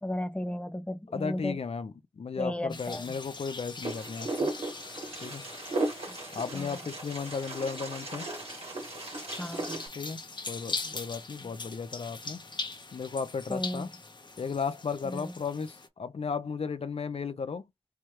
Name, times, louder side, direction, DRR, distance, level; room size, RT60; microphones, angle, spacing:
voice 1, 0.0-1.6 2.4-3.1 6.1-6.2 6.5-6.8 9.4-9.8 11.4-11.5 13.5-13.8 15.0-15.3, left 1 dB, 10° left, 0.5 m, -35 dB
voice 2, 1.1-4.5 5.2-5.4 6.3-8.3 10.0-10.2 10.5-12.4 12.9-13.9 14.4-17.7, left 5 dB, 75° left, 0.5 m, -35 dB
sound 1, 2.7-15.9, left 3 dB, 50° left, 0.7 m, -42 dB
Wind, 3.8-9.9, right 2 dB, 80° right, 2.0 m, -36 dB
4.7 x 2.3 x 2.9 m
wide cardioid pair, 70°, 10 cm